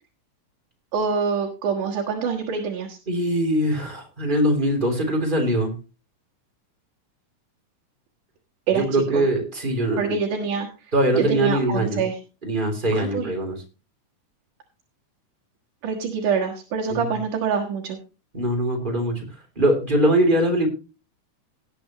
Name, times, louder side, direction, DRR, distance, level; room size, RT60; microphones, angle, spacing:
voice 1, 0.9-3.0 8.7-9.2 10.0-10.7 11.1-12.2 12.9-13.3 15.8-18.0, right 6 dB, 80° right, 1 dB, 3.0 m, -25 dB
voice 2, 3.1-5.7 8.7-10.2 10.9-12.0 12.4-13.6 16.9-17.0 18.3-19.1 19.6-20.7, right 1 dB, 15° right, 2 dB, 3.0 m, -22 dB
18.0 x 8.7 x 3.0 m, 0.32 s
omnidirectional pair, 3.6 m